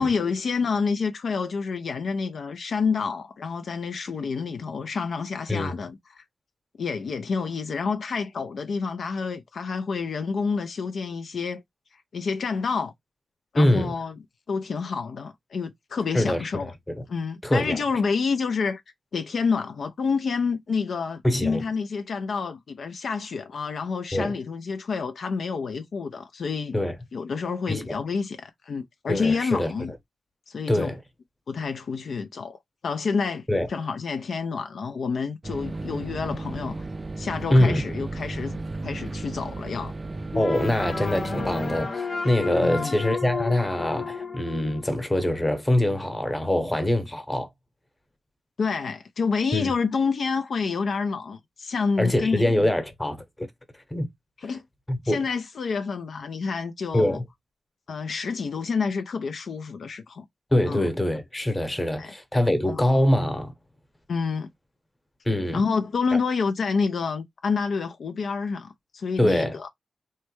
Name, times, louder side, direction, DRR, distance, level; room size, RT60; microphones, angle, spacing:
voice 1, 0.0-6.2 6.8-11.6 12.1-12.9 13.5-14.1 14.5-16.7 17.1-18.8 19.1-26.8 27.1-29.9 30.5-30.9 31.5-36.8 37.2-39.9 42.6-43.0 48.6-52.7 54.4-54.6 55.0-57.2 57.9-60.3 60.7-60.9 62.0-62.1 62.7-62.9 64.1-64.5 65.5-69.7, left 5 dB, 75° left, 0.4 m, -28 dB
voice 2, 13.6-13.9 16.1-16.5 16.9-17.0 17.4-17.8 21.2-21.6 24.1-24.3 26.7-26.9 27.7-28.0 29.1-29.7 30.7-31.0 33.5-33.7 37.5-37.8 40.3-47.5 49.5-49.7 52.0-53.5 53.9-54.1 54.9-55.2 56.9-57.2 60.5-63.5 65.2-65.6 66.1-66.2 69.2-69.6, left 1 dB, 15° left, 0.9 m, -24 dB
sound 1, 35.4-41.9, right 2 dB, 35° right, 0.3 m, -34 dB
sound 2, 40.3-45.3, left 4 dB, 55° left, 0.8 m, -32 dB
3.2 x 2.2 x 3.0 m
cardioid pair, 55°, 0 cm